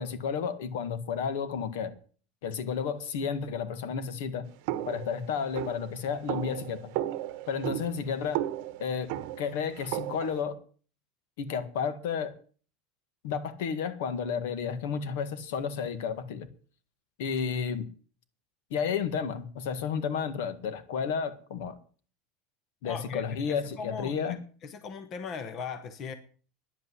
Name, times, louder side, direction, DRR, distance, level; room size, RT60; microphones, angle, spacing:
voice 1, 0.0-1.9 2.4-4.5 4.9-6.9 7.5-8.4 8.8-9.1 9.4-10.6 11.4-12.3 13.2-16.5 17.2-17.9 18.7-21.7 22.8-24.4, left 6 dB, 75° left, 1.8 m, -32 dB
sound 1, 4.7-10.4, right 14 dB, 50° right, 1.0 m, -35 dB
voice 2, 22.8-24.3 24.6-26.1, left 5 dB, 30° left, 1.1 m, -39 dB
10.5 x 8.6 x 9.7 m
supercardioid pair, 180°, 0 cm